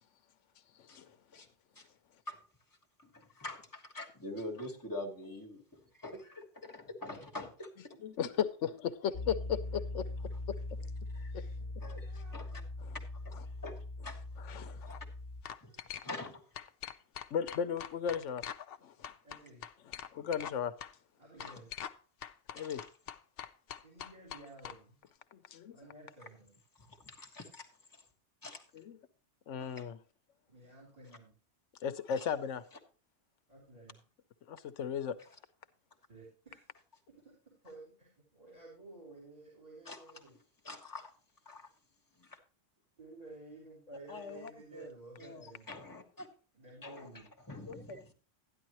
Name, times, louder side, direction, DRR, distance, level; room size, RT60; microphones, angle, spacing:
voice 1, 0.8-1.4 8.0-10.1 10.5-10.6 11.3-11.5 12.8-13.0 13.3-13.4 14.4-14.9 17.3-18.4 18.8-19.1 19.8-20.7 22.5-22.8 25.3-25.8 28.7-29.0 29.5-30.0 31.8-32.6 34.5-35.2, left 8 dB, 75° left, 1.1 m, -36 dB
voice 2, 3.0-8.0 11.1-11.3 11.8-12.6 13.2-13.3 13.6-14.2 14.6-15.0 15.6-15.7 16.0-16.4 21.4-21.6 22.6-22.8 26.9-27.7 28.4-28.6 29.7-29.8 32.2-32.3 39.8-40.0 40.6-41.1 41.4-41.7 42.2-42.4 44.1-44.9 45.2-46.3 46.8-48.1, left 2 dB, 15° left, 1.5 m, -45 dB
Piano, 9.1-15.4, left 2 dB, 35° left, 1.0 m, -41 dB
voice 3, 11.3-11.7 12.1-12.4 15.6-15.8 19.2-19.6 21.2-21.7 23.8-25.0 25.7-26.6 30.5-31.3 33.5-34.0 36.1-36.6 37.6-40.4 43.0-45.7 46.5-47.3, right 2 dB, 30° right, 3.6 m, -53 dB
sound 1, 14.7-15.0 15.4-16.3 16.5-18.8 19.0-20.5 20.8-20.9 21.4-22.0 22.2-24.8, left 9 dB, 60° left, 0.7 m, -44 dB
12.5 x 10.5 x 3.0 m
omnidirectional pair, 1.3 m